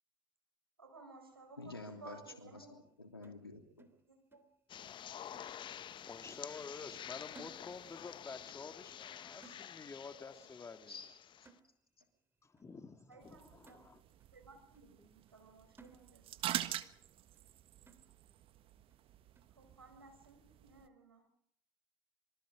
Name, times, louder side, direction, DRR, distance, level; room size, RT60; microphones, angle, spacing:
voice 1, 0.8-2.7 4.1-4.4 13.1-13.9 14.3-16.3 16.6-16.8 19.6-21.3, right 3 dB, 85° right, 4 dB, 5.3 m, -57 dB
voice 2, 1.6-3.9 10.9-11.1, left 3 dB, 90° left, 4 dB, 3.2 m, -50 dB
sound 1, 3.2-4.5 4.8-5.0 5.3-6.0 6.3-6.6 6.8-8.1 8.4-8.6 8.9-9.2 9.4-10.1 10.4-10.7 11.0-11.2 11.5-12.1 12.6-12.7 13.1-13.3 13.7-14.3 14.7-14.9 15.3-15.5 15.8-16.5 16.8-16.9 17.3-17.5 17.9-18.4 18.9-19.0 19.4-19.6, right 3 dB, 20° right, 3.2 m, -63 dB
sound 2, 4.7-11.5, left 10 dB, 40° left, 1.0 m, -49 dB
voice 3, 6.1-11.0 12.4-14.0, left 4 dB, 25° left, 8 dB, 2.3 m, -50 dB
sound 3, 13.2-20.9, right 12 dB, 50° right, 1.5 m, -46 dB
26.5 x 24.0 x 5.1 m, 0.71 s
figure-of-eight pair, 60°, 12 cm